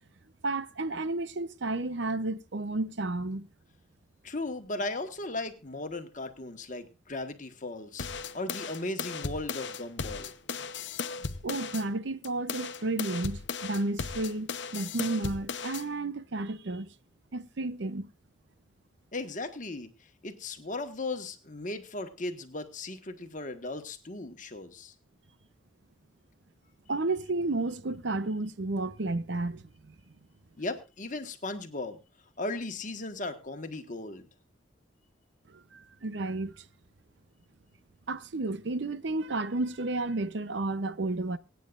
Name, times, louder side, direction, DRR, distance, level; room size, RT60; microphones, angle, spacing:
voice 1, 0.4-3.5 11.4-16.9 17.3-18.1 26.9-29.6 35.7-36.5 38.1-41.4, right 2 dB, 65° right, 0.7 m, -32 dB
voice 2, 4.2-10.3 19.1-19.9 20.2-24.9 30.6-32.0 32.4-34.2, left 2 dB, 40° left, 1.4 m, -37 dB
sound 1, 8.0-11.9 12.2-15.9, left 5 dB, 65° left, 0.8 m, -36 dB
24.0 x 9.4 x 2.5 m
head